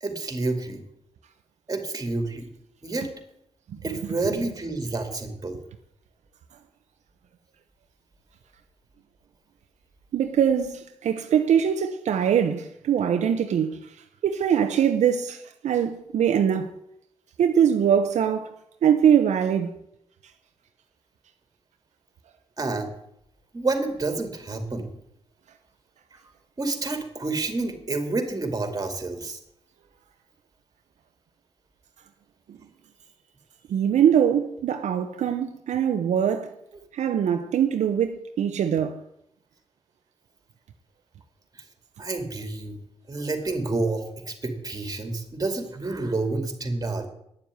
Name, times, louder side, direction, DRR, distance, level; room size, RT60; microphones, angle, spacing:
voice 1, 0.0-0.8 1.7-2.5 2.8-3.1 3.8-5.6 22.6-22.9 23.5-24.9 26.6-29.4 42.0-42.8 43.1-47.1, right 3 dB, 30° right, 2.5 m, -29 dB
voice 2, 10.1-13.8 14.2-16.7 17.4-18.5 18.8-19.7 32.5-32.6 33.7-36.5 36.9-39.0, right 8 dB, 80° right, 0.8 m, -22 dB
9.9 x 7.2 x 9.2 m
cardioid pair, 80°, 12 cm